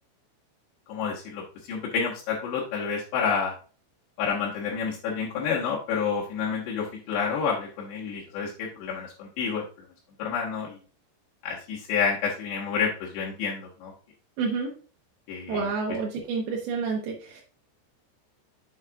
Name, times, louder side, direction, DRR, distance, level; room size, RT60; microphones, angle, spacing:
voice 1, 0.9-3.5 4.2-9.6 10.2-10.7 11.4-13.9 15.3-15.7, left 6 dB, 70° left, -5 dB, 3.0 m, -29 dB
voice 2, 14.4-14.7 15.5-17.4, right 4 dB, 70° right, -2 dB, 2.5 m, -29 dB
7.3 x 7.2 x 2.4 m, 0.38 s
omnidirectional pair, 5.9 m